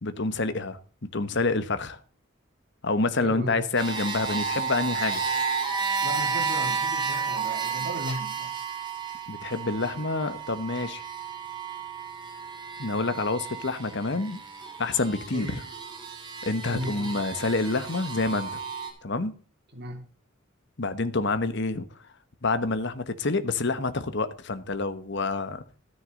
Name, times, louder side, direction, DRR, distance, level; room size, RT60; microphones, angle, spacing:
voice 1, 0.0-0.8 1.1-2.0 2.8-5.2 9.3-11.0 12.8-14.4 14.8-15.6 16.4-18.6 19.0-19.3 20.8-21.9 22.4-25.6, left 3 dB, 55° left, 1.2 m, -27 dB
voice 2, 3.2-3.6 6.0-8.6 15.3-15.6 16.7-17.2 19.7-20.1, right 1 dB, 50° right, 2.9 m, -35 dB
sound 1, 3.8-18.9, right 6 dB, 20° right, 3.6 m, -32 dB
13.0 x 9.8 x 3.9 m
head